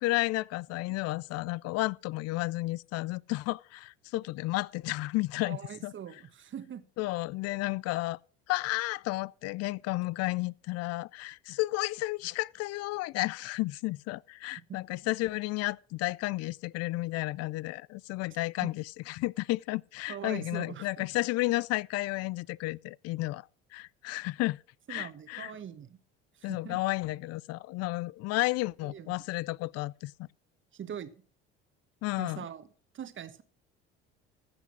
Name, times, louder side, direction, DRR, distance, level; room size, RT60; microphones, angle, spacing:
voice 1, 0.0-5.9 7.0-8.2 8.5-23.5 23.7-24.6 24.9-25.5 26.4-30.1 32.0-32.4, left 20 dB, 55° left, 0.4 m, -32 dB
voice 2, 5.4-6.8 14.7-14.8 20.1-21.1 24.9-26.0 26.3-26.8 28.8-29.1 30.7-31.1 32.2-32.7 32.9-33.4, right 9 dB, 40° right, 1.3 m, -42 dB
15.0 x 6.0 x 6.0 m
hypercardioid pair, 75°, 30 cm